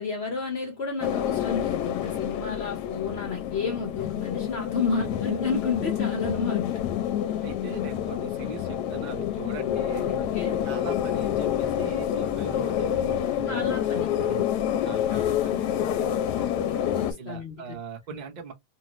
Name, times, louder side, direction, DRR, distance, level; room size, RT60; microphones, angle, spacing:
voice 1, 0.0-6.8 10.2-10.6 13.5-14.1 16.3-17.8, left 4 dB, 60° left, 0.7 m, -31 dB
sound 1, 1.0-17.1, left 10 dB, 75° left, 1.1 m, -28 dB
voice 2, 5.0-5.4 7.4-10.2 10.6-14.5 14.8-16.1 17.2-18.5, right 6 dB, 45° right, 0.5 m, -41 dB
2.9 x 2.6 x 2.9 m
omnidirectional pair, 1.9 m